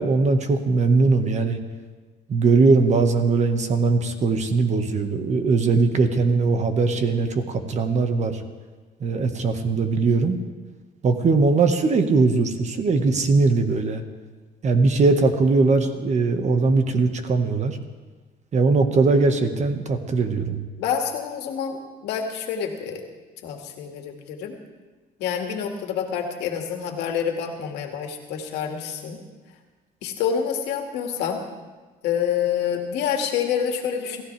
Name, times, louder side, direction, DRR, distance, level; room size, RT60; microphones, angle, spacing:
voice 1, 0.0-1.6 2.3-8.4 9.0-10.4 11.0-14.0 14.6-17.8 18.5-20.6, right 3 dB, 45° right, 7 dB, 1.6 m, -20 dB
voice 2, 20.8-23.0 23.4-24.6 25.2-29.2 30.0-31.4 32.0-34.2, left 8 dB, 85° left, 3 dB, 2.2 m, -27 dB
27.5 x 15.0 x 3.5 m, 1.3 s
cardioid pair, 110°, 17 cm